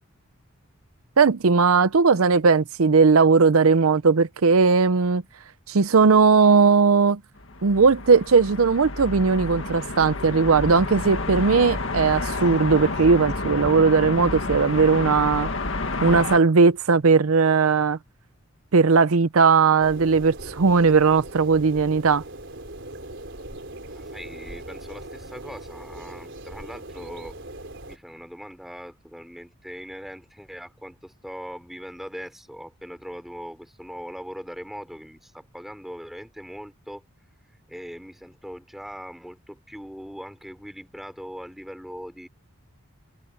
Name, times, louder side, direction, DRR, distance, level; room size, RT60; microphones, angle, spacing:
voice 1, 1.2-5.2 5.7-7.2 7.6-15.5 16.0-18.0 18.7-22.2, right 5 dB, 75° right, 0.6 m, -18 dB
sound 1, 7.4-16.4, left 3 dB, 60° left, 1.9 m, -30 dB
sound 2, 19.8-28.0, right 1 dB, 55° right, 4.5 m, -40 dB
voice 2, 23.9-27.4 27.7-37.0 37.7-42.3, equal, ahead, 4.9 m, -40 dB
head